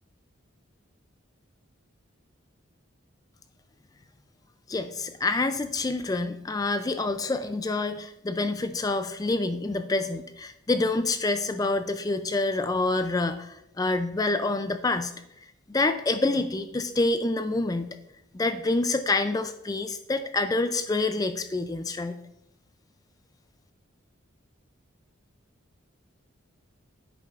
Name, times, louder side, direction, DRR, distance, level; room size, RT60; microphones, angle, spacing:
voice 1, 4.7-15.1 15.7-18.0 18.3-22.2, left 2 dB, 20° left, 9 dB, 0.3 m, -27 dB
10.5 x 8.7 x 2.4 m, 0.83 s
head